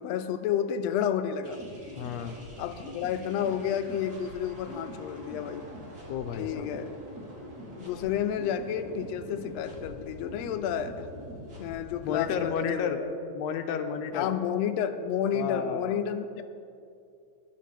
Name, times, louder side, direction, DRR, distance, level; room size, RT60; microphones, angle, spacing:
voice 1, 0.0-1.6 2.6-5.7 6.3-6.9 7.8-11.1 11.6-12.9 14.1-16.4, left 9 dB, 90° left, 8 dB, 1.5 m, -31 dB
sound 1, 1.4-12.5, equal, 35° right, 3.1 m, -44 dB
voice 2, 2.0-2.4 6.1-6.7 12.0-13.0 13.3-14.3 15.3-16.0, left 7 dB, 75° left, 5 dB, 1.7 m, -31 dB
17.5 x 11.5 x 3.4 m, 2.5 s
omnidirectional pair, 3.5 m